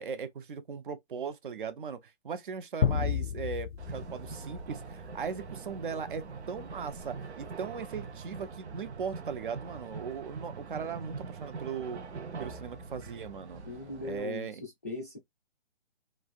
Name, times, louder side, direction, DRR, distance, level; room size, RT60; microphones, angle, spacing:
voice 1, 0.0-12.0 12.4-13.6 14.0-14.6, right 6 dB, 50° right, 0.6 m, -38 dB
sound 1, 2.8-5.3, left 8 dB, 70° left, 0.5 m, -32 dB
sound 2, 3.8-14.2, right 4 dB, 80° right, 0.8 m, -43 dB
voice 2, 13.6-15.2, left 2 dB, 15° left, 0.4 m, -39 dB
3.2 x 2.4 x 2.4 m
hypercardioid pair, 160°, 33 cm